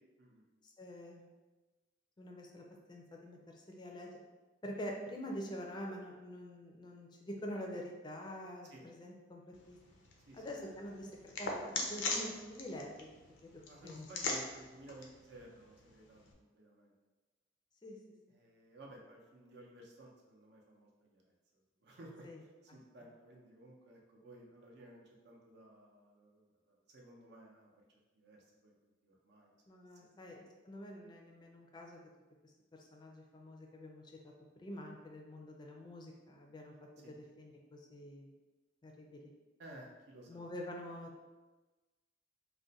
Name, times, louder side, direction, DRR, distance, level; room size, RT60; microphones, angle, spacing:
voice 1, 0.6-1.3 2.2-4.1 4.6-9.4 9.7-9.8 10.4-13.1 13.4-14.1 17.8-18.0 22.2-22.4 29.7-32.0 32.9-38.3 38.8-39.2 40.3-41.1, equal, 25° left, 0 dB, 0.4 m, -46 dB
sound 1, 9.5-16.3, left 3 dB, 85° left, 0.5 m, -42 dB
voice 2, 13.7-16.9 18.3-27.7 28.1-28.7 29.0-29.5 30.0-30.4 37.0-37.1 39.6-40.4, right 1 dB, 65° right, -1 dB, 0.6 m, -56 dB
2.4 x 2.1 x 3.9 m, 1.2 s
head